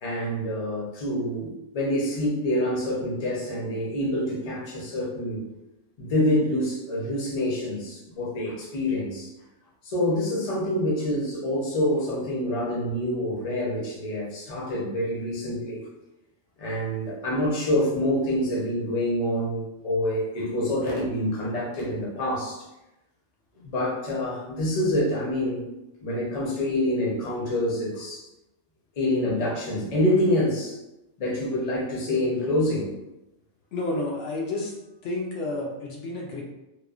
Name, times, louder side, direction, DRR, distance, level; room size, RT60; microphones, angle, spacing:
voice 1, 0.0-5.4 6.0-9.3 9.8-15.8 16.6-22.7 23.6-25.6 26.0-28.2 29.0-30.8 31.2-32.9, left 1 dB, 35° left, -5 dB, 0.6 m, -26 dB
voice 2, 33.7-34.7 35.0-36.4, left 2 dB, 70° left, -3 dB, 0.8 m, -30 dB
3.0 x 2.2 x 2.4 m, 0.96 s
omnidirectional pair, 1.3 m